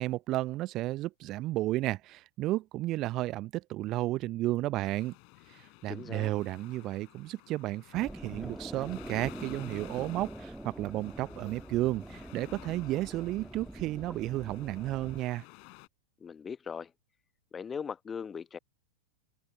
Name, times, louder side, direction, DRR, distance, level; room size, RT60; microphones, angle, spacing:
voice 1, 0.0-5.1 5.5-15.4, right 16 dB, 35° right, 0.5 m, -33 dB
sound 1, 4.8-15.9, left 37 dB, 45° left, 4.3 m, -54 dB
voice 2, 5.9-6.3 16.2-16.9 17.5-18.6, left 6 dB, 20° left, 1.2 m, -39 dB
sound 2, 7.9-15.2, right 1 dB, 5° right, 2.2 m, -44 dB
figure-of-eight pair, 90°, 0 cm